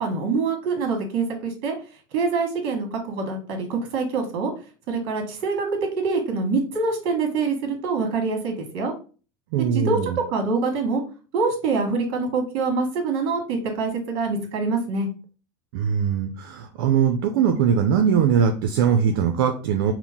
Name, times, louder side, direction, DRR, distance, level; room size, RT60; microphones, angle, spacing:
voice 1, 0.0-1.8 2.1-4.5 4.9-5.7 6.0-8.9 9.6-10.0 10.3-11.0 11.3-15.1, right 4 dB, 55° right, 3 dB, 1.4 m, -25 dB
voice 2, 9.5-10.2 15.7-19.9, right 7 dB, 75° right, 5 dB, 0.5 m, -21 dB
4.4 x 2.1 x 3.5 m, 0.36 s
supercardioid pair, 125°, 12 cm